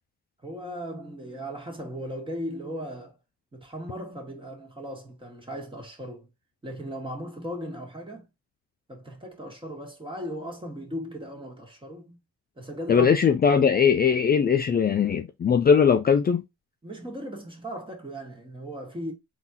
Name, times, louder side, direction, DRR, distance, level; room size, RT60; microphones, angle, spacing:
voice 1, 0.4-3.2 3.5-6.3 6.6-8.3 8.9-12.2 12.6-13.1 16.8-19.1, equal, 15° right, 1.9 m, -37 dB
voice 2, 12.9-16.4, left 6 dB, 30° left, 0.5 m, -20 dB
3.8 x 2.9 x 4.0 m
cardioid pair, 90°, 30 cm